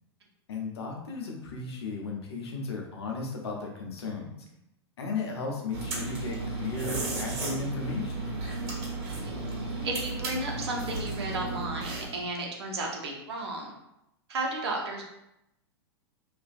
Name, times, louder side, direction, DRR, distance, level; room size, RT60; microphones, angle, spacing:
voice 1, 0.5-4.4 5.0-8.2, left 4 dB, 75° left, 0 dB, 0.7 m, -35 dB
sound 1, 5.7-12.2, right 2 dB, 55° right, 1.2 m, -34 dB
voice 2, 9.8-13.7 14.3-15.0, right 2 dB, 75° right, -1 dB, 0.7 m, -33 dB
2.5 x 2.3 x 2.4 m, 0.85 s
hypercardioid pair, 105°, 14 cm